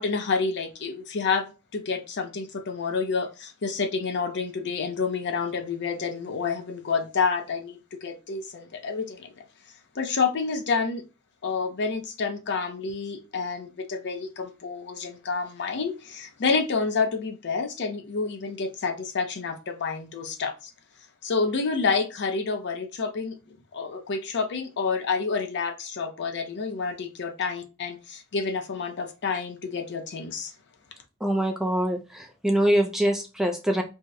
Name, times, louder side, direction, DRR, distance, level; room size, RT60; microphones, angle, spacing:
voice 1, 0.0-9.3 10.0-11.0 11.4-20.7 21.2-30.5, left 4 dB, 55° left, 6 dB, 0.5 m, -29 dB
voice 2, 31.2-33.8, right 1 dB, ahead, 3 dB, 0.3 m, -24 dB
2.7 x 2.0 x 3.5 m, 0.30 s
head